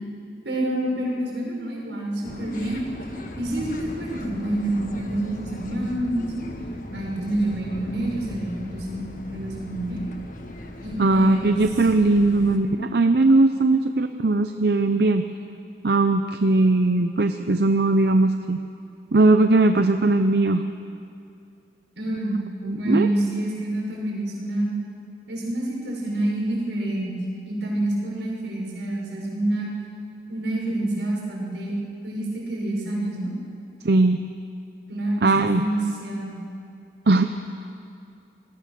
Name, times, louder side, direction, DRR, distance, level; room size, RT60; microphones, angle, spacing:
voice 1, 0.4-2.8 3.4-6.3 6.9-10.0 10.8-11.6 12.5-12.8 22.0-22.4 22.7-24.7 25.3-27.2 27.4-29.7 30.3-31.7 32.0-33.3 34.9-36.3, right 1 dB, 85° right, -3 dB, 6.4 m, -27 dB
sound 1, 2.2-12.6, left 1 dB, 45° left, 1.7 m, -38 dB
voice 2, 11.0-15.2 15.8-18.6 19.1-20.6 22.6-23.1 33.8-34.2 35.2-35.7 37.1-37.2, right 2 dB, 65° right, 8 dB, 0.7 m, -19 dB
27.5 x 20.0 x 6.8 m, 2.5 s
head